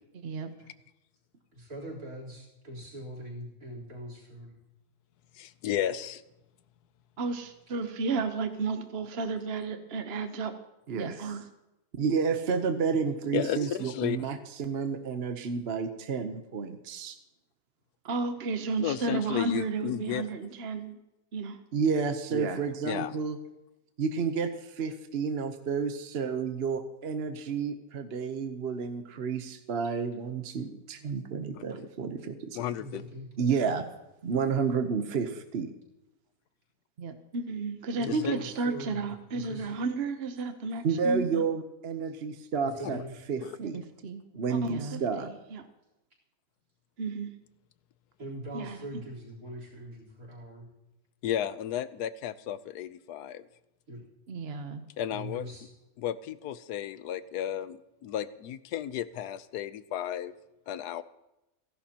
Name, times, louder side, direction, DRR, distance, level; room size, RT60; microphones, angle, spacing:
voice 1, 1.5-4.5 23.0-23.1 32.8-33.3 37.9-39.7 42.7-43.1 48.2-50.7 53.9-54.0 55.1-55.7, right 1 dB, 65° right, -1 dB, 4.3 m, -42 dB
voice 2, 5.3-6.2 13.3-14.3 18.8-20.3 22.8-23.1 31.7-31.9 32.5-33.0 38.0-38.4 42.9-43.0 43.4-43.6 51.2-53.5 55.0-55.5 56.0-60.3 60.7-61.0, left 11 dB, 90° left, 14 dB, 1.2 m, -33 dB
voice 3, 7.2-10.5 10.9-11.5 11.9-17.2 18.0-21.0 21.3-23.4 24.0-32.6 33.4-33.8 34.2-35.7 37.0-43.0 43.3-45.7 47.0-47.3 48.5-48.8 54.3-54.8, right 5 dB, 45° right, 7 dB, 1.0 m, -31 dB
29.0 x 11.5 x 2.9 m, 0.94 s
omnidirectional pair, 1.6 m